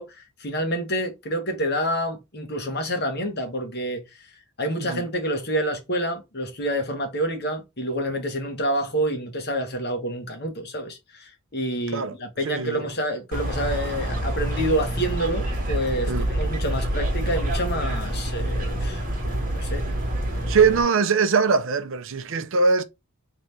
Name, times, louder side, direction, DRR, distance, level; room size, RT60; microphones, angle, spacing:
voice 1, 0.0-4.0 4.6-19.8 20.2-20.5, equal, 45° left, 1.2 m, -28 dB
voice 2, 12.4-12.8 16.1-16.3 20.5-22.8, right 5 dB, 60° right, 0.5 m, -21 dB
sound 1, 13.3-20.8, right 1 dB, 40° right, 1.7 m, -27 dB
3.7 x 3.2 x 3.3 m
head